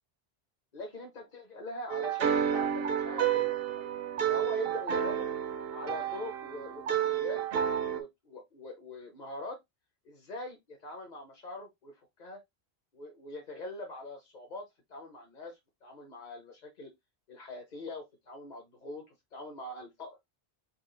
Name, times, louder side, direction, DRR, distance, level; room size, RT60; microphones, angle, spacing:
voice 1, 0.7-3.9 4.3-5.3 5.7-7.4 7.9-9.6 10.0-12.4 12.9-16.9 17.3-20.2, left 2 dB, 45° left, 0.9 m, -43 dB
sound 1, 1.9-8.0, right 9 dB, 65° right, 0.8 m, -30 dB
4.1 x 2.4 x 3.8 m
omnidirectional pair, 1.1 m